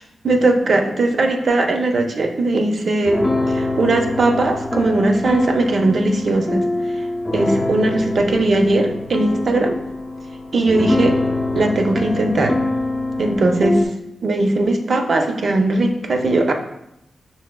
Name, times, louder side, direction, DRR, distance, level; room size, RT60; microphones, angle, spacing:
voice 1, 0.2-6.6 7.3-9.8 10.5-11.2 11.5-12.6 13.2-13.9 14.2-16.5, right 2 dB, 65° right, 4 dB, 0.4 m, -19 dB
sound 1, 3.0-13.9, left 2 dB, 30° left, 0.5 m, -24 dB
5.5 x 2.7 x 2.2 m, 0.83 s
cardioid pair, 80°, 0 cm